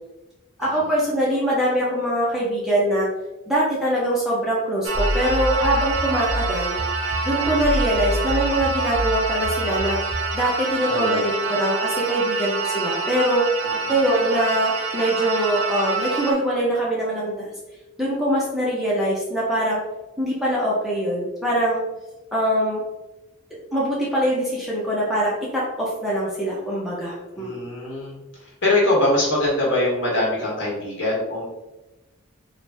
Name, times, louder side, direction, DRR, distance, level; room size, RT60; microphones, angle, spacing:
voice 1, 0.6-3.1 3.5-6.8 7.2-10.0 10.3-13.4 13.9-17.5 18.0-19.8 20.2-21.8 22.3-22.8 23.7-27.6, right 1 dB, ahead, -7 dB, 0.6 m, -23 dB
sound 1, 4.8-16.3, right 4 dB, 75° right, 0.5 m, -27 dB
sound 2, 4.9-10.4, equal, 25° left, 1.4 m, -28 dB
voice 2, 10.9-11.3 13.6-13.9 27.3-28.2 28.6-31.4, left 1 dB, 60° left, -5 dB, 1.3 m, -23 dB
3.2 x 2.5 x 3.3 m, 1.0 s
head